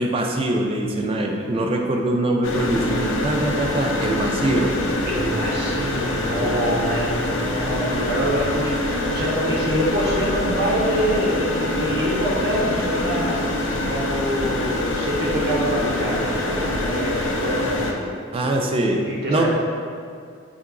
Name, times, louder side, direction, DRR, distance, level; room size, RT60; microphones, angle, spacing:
voice 1, 0.0-4.7 18.3-19.0 19.3-19.5, right 1 dB, 30° right, 2 dB, 0.3 m, -22 dB
sound 1, 2.4-17.9, left 1 dB, 75° left, 0.4 m, -25 dB
voice 2, 5.0-13.4 13.8-18.6 18.9-19.5, equal, 55° right, -4 dB, 0.8 m, -25 dB
4.7 x 3.6 x 2.3 m, 2.2 s
head